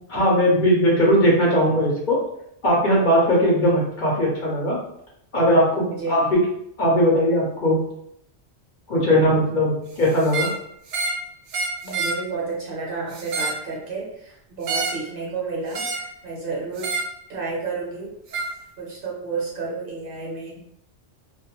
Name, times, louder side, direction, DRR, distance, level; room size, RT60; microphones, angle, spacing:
voice 1, 0.1-2.2 2.6-4.8 5.3-6.3 6.8-7.8 8.9-10.5, equal, 50° left, -4 dB, 0.7 m, -19 dB
voice 2, 5.8-6.3 11.8-17.0 17.3-18.1 18.8-20.6, right 4 dB, 55° right, -3 dB, 0.9 m, -31 dB
sound 1, 10.2-10.6 10.9-11.2 11.5-12.2 13.1-13.6 14.6-15.0 15.7-16.1 16.8-17.1 18.3-18.5, right 3 dB, 85° right, 0.9 m, -27 dB
2.3 x 2.3 x 2.8 m, 0.73 s
omnidirectional pair, 1.2 m